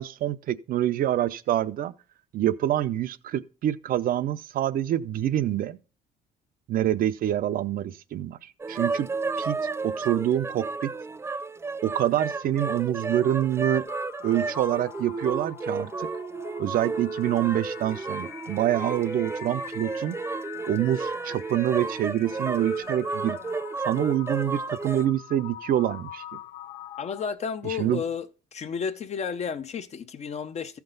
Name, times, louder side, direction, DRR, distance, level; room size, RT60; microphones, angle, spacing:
voice 1, 0.0-1.9 2.3-5.8 6.7-9.1 9.4-9.6 9.8-10.9 11.8-13.8 14.2-16.1 16.6-20.2 20.7-23.4 23.8-26.2 27.6-28.0, right 12 dB, 60° right, 0.6 m, -26 dB
sound 1, 8.6-25.1, right 4 dB, 15° right, 0.4 m, -32 dB
sound 2, 13.9-27.3, left 11 dB, 85° left, 0.9 m, -43 dB
voice 2, 27.0-28.3 28.5-30.8, left 6 dB, 40° left, 0.6 m, -32 dB
14.0 x 5.9 x 3.9 m
cardioid pair, 110°, 17 cm